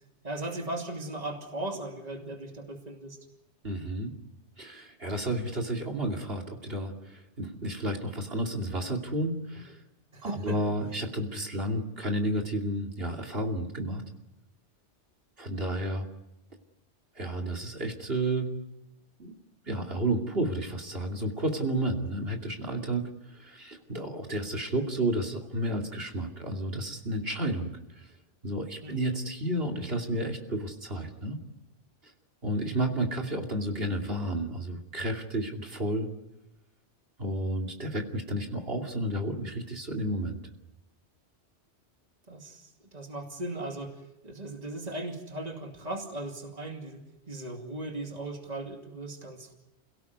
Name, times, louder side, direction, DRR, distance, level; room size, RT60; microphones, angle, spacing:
voice 1, 0.2-3.2 10.1-10.7 28.8-29.2 42.3-49.5, right 2 dB, 35° right, 3 dB, 2.7 m, -38 dB
voice 2, 3.6-4.1 4.6-9.8 10.2-14.0 15.4-16.0 17.1-18.5 19.7-28.1 28.4-31.4 32.4-36.1 37.2-40.4, right 1 dB, 55° right, 3 dB, 2.9 m, -31 dB
28.5 x 17.5 x 9.6 m, 0.92 s
omnidirectional pair, 1.2 m